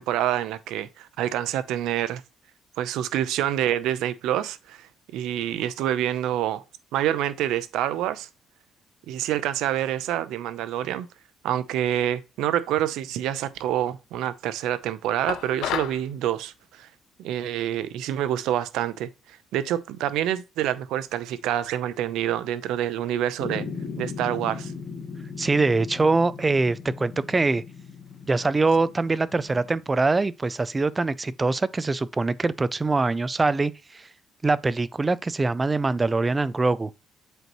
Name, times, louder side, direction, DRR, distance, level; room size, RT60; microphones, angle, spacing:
voice 1, 0.0-2.2 2.8-6.6 6.9-8.3 9.1-11.1 11.4-16.9 17.2-23.7 24.0-24.7, right 11 dB, 85° right, 0.7 m, -27 dB
sound 1, 15.3-16.0, left 10 dB, 80° left, 0.7 m, -30 dB
sound 2, 23.4-29.9, left 5 dB, 40° left, 1.6 m, -38 dB
voice 2, 25.4-27.6 28.3-34.1 34.4-36.9, right 3 dB, 20° right, 0.4 m, -23 dB
8.0 x 4.6 x 3.0 m
cardioid pair, 140°, 0 cm